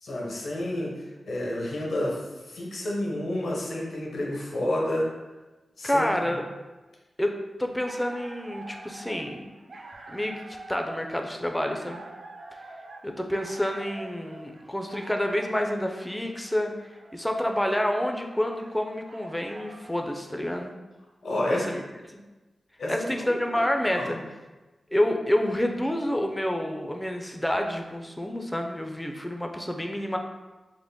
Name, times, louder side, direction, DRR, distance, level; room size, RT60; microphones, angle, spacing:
voice 1, 0.0-5.1 5.8-6.4 21.2-21.8 22.8-23.6 23.9-24.2, left 1 dB, 75° left, -3 dB, 0.8 m, -30 dB
voice 2, 5.8-6.4 7.2-7.3 7.6-9.5 10.1-10.4 10.7-12.0 13.0-16.7 17.1-20.7 21.5-21.8 22.1-22.2 22.9-24.2 24.9-30.2, left 1 dB, 10° left, 3 dB, 0.3 m, -28 dB
sound 1, 7.6-20.0, right 2 dB, 65° right, 0.4 m, -46 dB
3.6 x 2.1 x 3.5 m, 1.2 s
wide cardioid pair, 90°, 0 cm